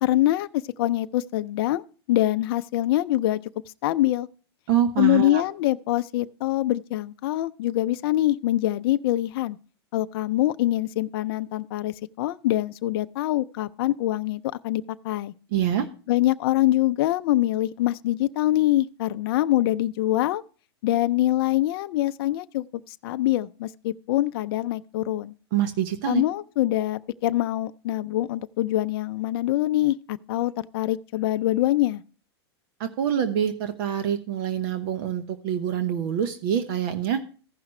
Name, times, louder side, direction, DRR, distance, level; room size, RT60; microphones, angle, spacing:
voice 1, 0.0-1.8 2.1-3.4 3.8-4.3 5.0-9.6 9.9-15.3 16.1-20.4 20.8-25.3 26.1-32.0, left 15 dB, 60° left, 0.4 m, -24 dB
voice 2, 4.7-5.4 15.5-15.9 25.5-26.2 32.8-37.2, right 9 dB, 55° right, 0.9 m, -25 dB
15.0 x 5.8 x 3.1 m
hypercardioid pair, 120°, 14 cm